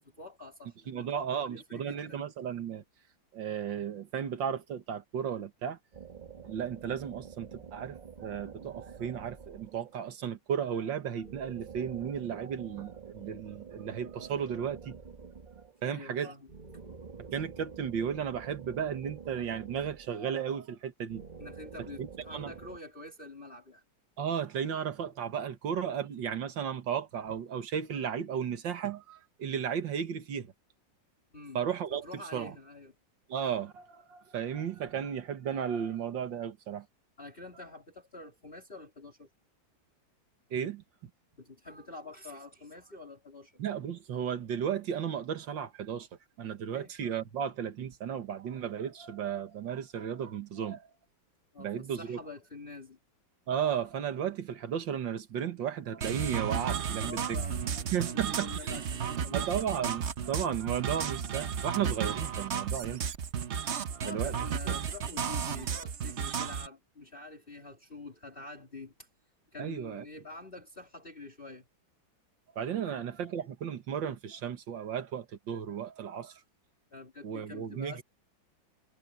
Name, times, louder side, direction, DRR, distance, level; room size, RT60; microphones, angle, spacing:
voice 1, 0.0-2.3 15.8-16.5 21.4-23.8 31.3-31.6 31.9-33.0 37.2-39.3 41.4-43.6 46.7-46.9 51.5-53.0 57.0-59.5 64.0-69.1 69.5-71.7 72.8-73.0 76.9-78.0, left 3 dB, 25° left, 3.5 m, -47 dB
voice 2, 0.9-2.8 3.3-5.8 6.4-15.0 15.8-16.3 17.2-21.2 22.0-22.5 24.2-30.5 31.5-32.0 32.3-32.5 33.3-36.9 40.5-41.1 43.6-46.1 46.4-50.9 51.6-52.2 53.5-57.4 57.9-58.7 59.3-63.0 63.6-64.3 64.7-64.8 69.6-70.0 72.6-76.4 77.2-78.0, right 8 dB, 75° right, 2.1 m, -34 dB
sound 1, 5.9-10.1 11.2-15.9 16.5-20.5 21.1-22.8, right 6 dB, 25° right, 1.6 m, -48 dB
sound 2, 56.0-66.7, right 7 dB, 50° right, 0.8 m, -33 dB
omnidirectional pair, 2.1 m